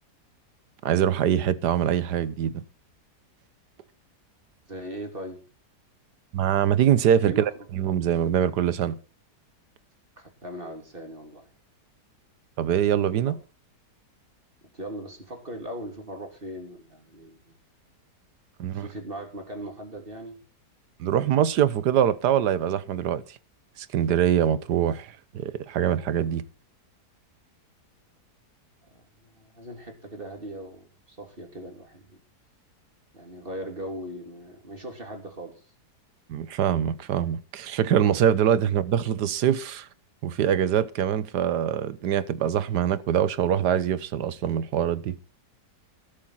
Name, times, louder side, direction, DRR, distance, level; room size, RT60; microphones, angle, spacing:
voice 1, 0.8-2.6 6.3-9.0 12.6-13.4 18.6-18.8 21.0-23.4 23.8-26.4 36.3-39.9 40.2-45.1, right 9 dB, 75° right, 1.5 m, -24 dB
voice 2, 4.7-5.4 7.2-7.5 10.2-11.5 14.7-17.6 18.7-20.4 28.9-32.0 33.1-35.7, right 1 dB, 30° right, 3.1 m, -39 dB
13.5 x 13.0 x 4.3 m
omnidirectional pair, 1.8 m